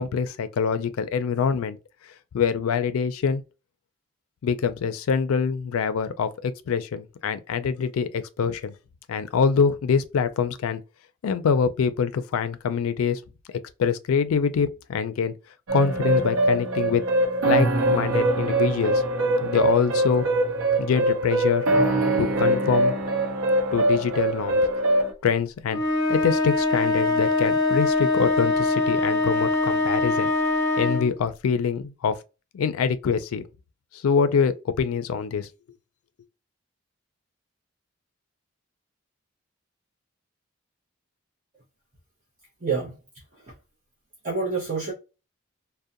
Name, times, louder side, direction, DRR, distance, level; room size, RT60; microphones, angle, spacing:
voice 1, 0.0-1.8 2.3-3.4 4.4-8.7 9.1-10.8 11.2-13.2 13.8-15.3 15.7-17.0 17.4-19.0 19.4-20.3 20.8-21.7 22.2-22.9 23.7-24.6 25.2-25.8 26.1-30.3 30.8-32.2 32.5-33.5 33.9-35.5, left 6 dB, 85° left, 0.4 m, -24 dB
sound 1, 15.7-25.1, right 2 dB, 80° right, 0.7 m, -23 dB
sound 2, 25.7-31.2, left 2 dB, 10° left, 1.0 m, -23 dB
voice 2, 42.6-43.0 43.3-43.6 44.2-44.9, right 4 dB, 35° right, 0.6 m, -28 dB
2.6 x 2.1 x 2.4 m
head